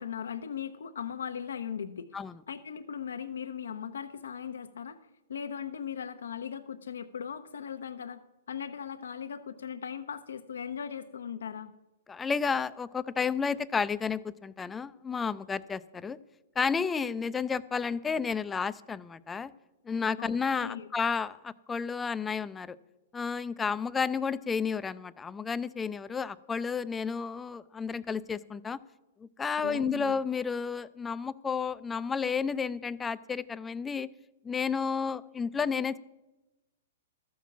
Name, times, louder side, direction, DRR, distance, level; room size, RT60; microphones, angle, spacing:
voice 1, 0.0-2.1 2.5-5.0 5.3-8.2 8.5-11.7 20.2-20.9 29.6-30.2, left 7 dB, 85° left, 8 dB, 0.6 m, -38 dB
voice 2, 12.1-16.2 16.6-19.5 19.9-22.8 23.1-28.8 29.2-34.1 34.4-36.0, left 5 dB, 15° left, 14 dB, 0.4 m, -31 dB
13.5 x 6.0 x 7.2 m, 1.0 s
hypercardioid pair, 135°, 0 cm